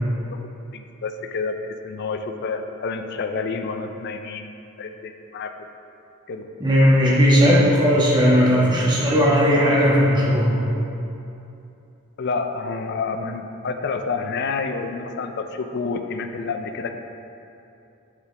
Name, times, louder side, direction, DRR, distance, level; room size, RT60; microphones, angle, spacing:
voice 1, 0.7-4.5 4.8-5.5 6.3-6.5 12.2-16.9, left 4 dB, 50° left, 7 dB, 0.4 m, -29 dB
voice 2, 6.6-10.5, equal, 20° right, -6 dB, 1.4 m, -17 dB
7.7 x 5.8 x 3.3 m, 2.7 s
head